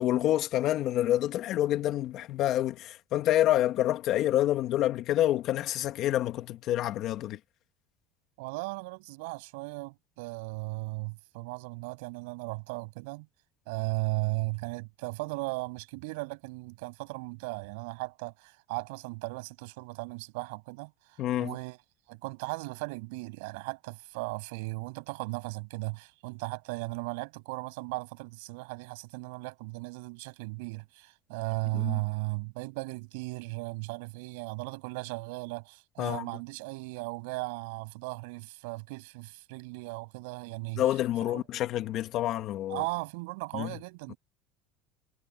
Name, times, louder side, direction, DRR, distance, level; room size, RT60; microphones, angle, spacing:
voice 1, 0.0-7.4 21.2-21.5 31.7-32.0 36.0-36.3 40.8-42.8 43.5-43.7, left 13 dB, 50° left, 2.2 m, -28 dB
voice 2, 8.4-13.3 13.7-21.8 22.1-40.8 41.2-41.4 42.7-44.2, right 27 dB, 85° right, 7.4 m, -36 dB
cardioid pair, 145°, 0 cm